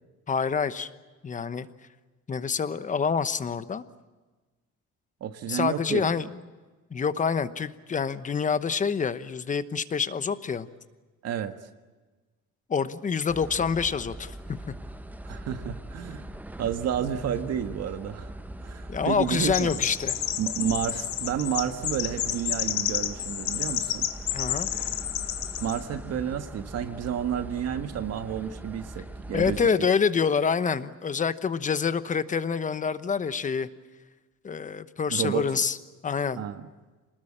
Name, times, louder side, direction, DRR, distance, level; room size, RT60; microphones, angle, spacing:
voice 1, 0.3-0.9 1.2-1.7 2.3-3.8 5.5-6.3 6.9-10.7 12.7-14.6 18.9-20.2 24.3-24.7 29.3-33.7 34.4-35.8 36.0-36.5, left 6 dB, 25° left, 13 dB, 1.0 m, -27 dB
voice 2, 5.2-6.2 11.2-11.5 15.2-16.3 16.6-18.3 18.6-19.8 20.4-24.1 25.6-29.9 35.1-35.5 36.3-36.6, right 9 dB, 60° right, 8 dB, 1.6 m, -31 dB
sound 1, 13.3-29.7, right 1 dB, 5° right, 0.8 m, -41 dB
Chirp tweet, 19.3-25.8, left 11 dB, 75° left, 1.6 m, -30 dB
28.0 x 20.0 x 8.8 m, 1.3 s
cardioid pair, 160°, 29 cm